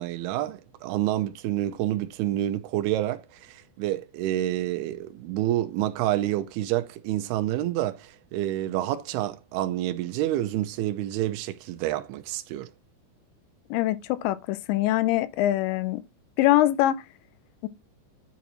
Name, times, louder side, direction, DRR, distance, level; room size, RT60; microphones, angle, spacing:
voice 1, 0.0-12.7, right 14 dB, 85° right, 2.3 m, -28 dB
voice 2, 13.7-16.0 16.4-17.0 17.6-17.7, left 14 dB, 85° left, 2.8 m, -23 dB
10.5 x 4.1 x 3.0 m
omnidirectional pair, 5.2 m